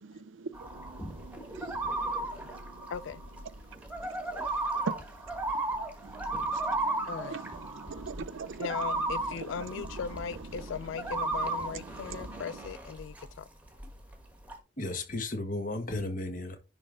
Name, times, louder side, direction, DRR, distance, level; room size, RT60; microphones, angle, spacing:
voice 1, 0.0-2.9 3.4-12.7, right 4 dB, 80° right, 0.6 m, -44 dB
sound 1, 0.5-13.3 13.6-14.5, right 2 dB, 5° right, 1.3 m, -35 dB
voice 2, 2.2-3.2 5.8-5.9 7.1-7.4 8.6-13.5, left 6 dB, 75° left, 0.4 m, -39 dB
voice 3, 14.8-16.6, left 2 dB, 40° left, 1.5 m, -34 dB
10.5 x 3.7 x 3.9 m
head